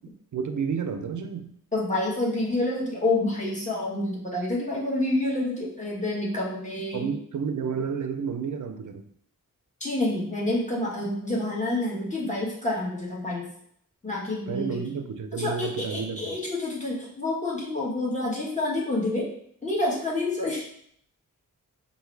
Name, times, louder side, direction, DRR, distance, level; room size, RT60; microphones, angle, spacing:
voice 1, 0.3-1.5 6.9-9.1 14.5-16.4, right 6 dB, 65° right, 7 dB, 0.5 m, -31 dB
voice 2, 1.7-7.1 9.8-13.5 14.0-14.8 15.4-19.3 19.6-20.7, left 2 dB, 20° left, -5 dB, 1.3 m, -28 dB
4.6 x 2.6 x 3.2 m, 0.68 s
wide cardioid pair, 75°, 33 cm